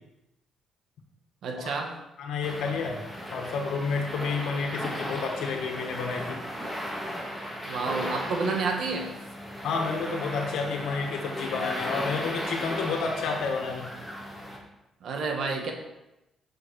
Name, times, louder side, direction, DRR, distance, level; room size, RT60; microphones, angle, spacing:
voice 1, 1.4-2.0 7.6-9.1 15.0-15.7, right 4 dB, 70° right, 3 dB, 1.6 m, -29 dB
voice 2, 2.2-3.0 3.3-6.4 9.6-13.9, left 4 dB, 80° left, 3 dB, 1.6 m, -30 dB
sound 1, 2.4-14.6, equal, 5° right, 2.6 m, -36 dB
8.9 x 6.3 x 4.8 m, 0.93 s
cardioid pair, 90°, 0 cm